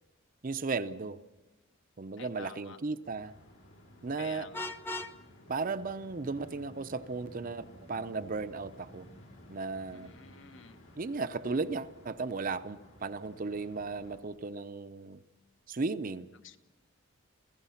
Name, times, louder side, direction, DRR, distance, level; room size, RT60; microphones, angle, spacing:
voice 1, 0.4-1.2 2.0-3.3 4.0-4.5 5.5-9.1 9.5-10.1 11.0-15.2 15.7-16.3, right 4 dB, 40° right, 11 dB, 0.6 m, -35 dB
voice 2, 2.2-2.8 4.2-4.7 9.9-10.8 16.4-16.6, left 5 dB, 60° left, 8 dB, 1.1 m, -49 dB
sound 1, 3.0-14.2, left 1 dB, 75° left, 5.4 m, -55 dB
Vehicle horn car horn honking, 4.5-5.2, left 2 dB, 10° left, 0.6 m, -37 dB
28.5 x 16.0 x 5.7 m, 1.1 s
head